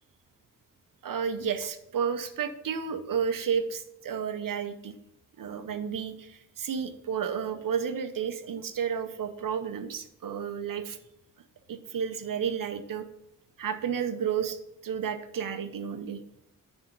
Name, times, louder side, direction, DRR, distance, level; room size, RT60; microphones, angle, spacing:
voice 1, 1.0-5.0 5.4-11.0 11.7-13.1 13.6-14.6 14.8-16.2, right 7 dB, 80° right, 8 dB, 0.7 m, -31 dB
9.5 x 3.5 x 5.2 m, 0.84 s
wide cardioid pair, 140°, 32 cm